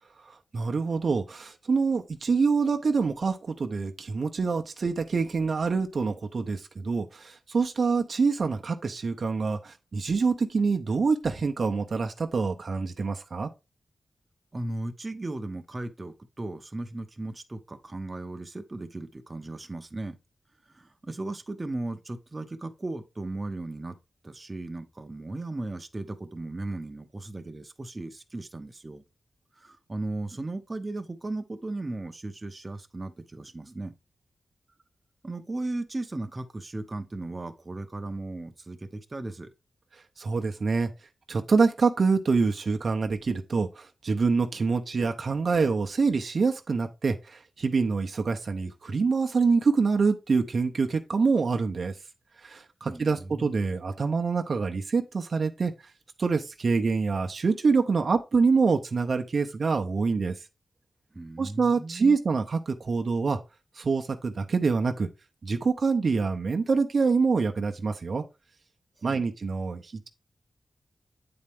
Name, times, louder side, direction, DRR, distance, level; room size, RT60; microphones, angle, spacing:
voice 1, 0.3-13.5 40.2-40.9 41.3-51.9 52.4-55.7 56.2-60.4 61.4-63.4 63.8-65.1 65.4-68.2 69.0-70.1, right 4 dB, 60° right, 0.7 m, -26 dB
voice 2, 14.5-20.2 20.7-24.0 24.2-29.0 29.6-33.9 35.2-39.5 52.9-53.6 61.1-62.2 69.1-69.2, right 2 dB, 25° right, 0.8 m, -36 dB
8.7 x 4.3 x 3.5 m
wide cardioid pair, 110°, 0 cm